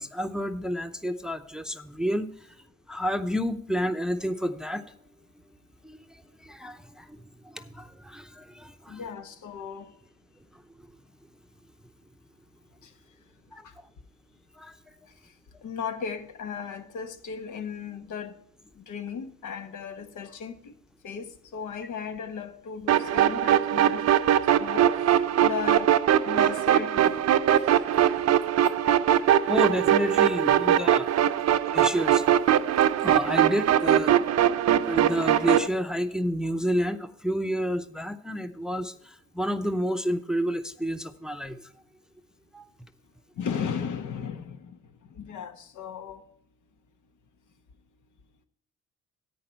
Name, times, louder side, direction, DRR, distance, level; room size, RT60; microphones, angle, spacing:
voice 1, 0.0-2.6 2.9-4.9 5.8-9.0 10.5-10.9 13.5-13.9 14.6-14.7 29.5-31.1 31.7-32.2 33.0-34.2 34.8-41.7 42.5-42.6, equal, ahead, 0.7 m, -30 dB
voice 2, 8.9-9.9 12.8-12.9 13.6-13.7 15.6-18.4 18.8-20.7 21.0-24.1 24.6-25.9 26.2-27.1 27.7-27.8 43.4-46.2, left 6 dB, 75° left, 1.2 m, -36 dB
sound 1, 22.9-35.7, right 10 dB, 60° right, 0.6 m, -22 dB
10.5 x 8.8 x 4.4 m
cardioid pair, 90°, 30 cm